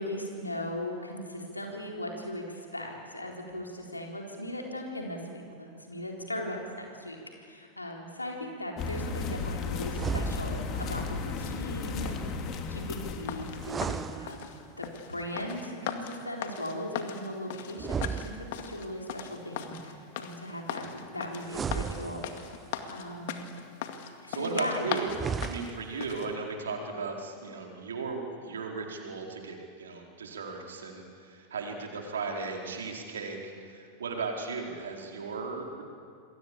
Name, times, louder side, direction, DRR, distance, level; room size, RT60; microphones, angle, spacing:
voice 1, 0.0-12.2 12.7-14.4 14.8-22.2 22.9-23.4 24.2-25.1, left 1 dB, 85° left, 1 dB, 4.0 m, -38 dB
sound 1, 8.8-14.0, left 4 dB, 35° left, 3.0 m, -35 dB
sound 2, 9.9-10.8 13.5-14.9 17.7-18.9 21.4-22.7 25.0-26.0, right 6 dB, 20° right, 0.6 m, -35 dB
sound 3, 13.1-26.3, left 9 dB, 50° left, 2.1 m, -39 dB
voice 2, 24.3-25.2 25.4-35.8, right 4 dB, 65° right, 1 dB, 4.5 m, -36 dB
28.0 x 22.0 x 8.7 m, 2.3 s
figure-of-eight pair, 90°, 0 cm